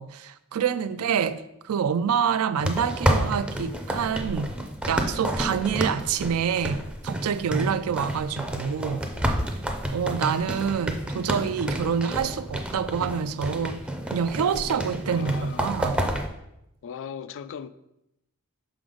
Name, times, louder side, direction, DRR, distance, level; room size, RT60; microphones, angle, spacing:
voice 1, 0.0-4.5 4.9-6.8 7.0-9.0 9.9-13.8 14.1-16.0, right 7 dB, 75° right, 0.4 m, -27 dB
voice 2, 0.8-1.3 15.0-15.8 16.8-17.7, left 7 dB, 60° left, 0.3 m, -39 dB
sound 1, 2.6-16.3, equal, 5° right, 0.5 m, -30 dB
5.9 x 3.8 x 4.9 m
head